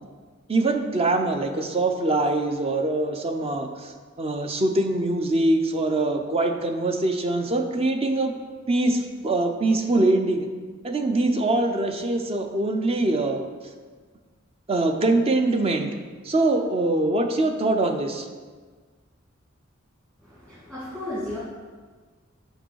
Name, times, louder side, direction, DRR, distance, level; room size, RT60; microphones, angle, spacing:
voice 1, 0.5-3.9 4.2-8.3 8.7-10.5 10.8-13.4 14.7-15.9 16.2-18.3, right 2 dB, 30° right, 6 dB, 0.6 m, -23 dB
voice 2, 20.2-21.4, left 1 dB, 10° right, -9 dB, 1.7 m, -34 dB
6.5 x 5.4 x 4.7 m, 1.5 s
head